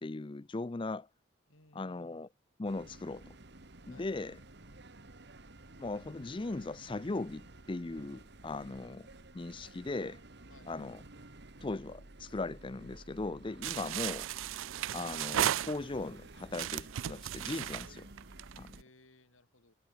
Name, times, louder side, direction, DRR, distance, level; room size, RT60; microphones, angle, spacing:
voice 1, 0.0-1.1 1.7-2.3 2.6-3.3 3.9-4.3 5.8-9.0 9.3-10.2 10.7-11.0 11.6-14.3 14.9-18.1 18.6-18.7, left 2 dB, 25° left, 0.5 m, -38 dB
voice 2, 1.5-2.3 3.9-4.2 10.5-10.7 18.8-19.7, left 2 dB, 85° left, 7.0 m, -63 dB
sound 1, 2.7-18.8, right 2 dB, 55° right, 2.0 m, -53 dB
sound 2, 13.6-16.1 16.5-18.7, right 11 dB, 75° right, 0.4 m, -35 dB
head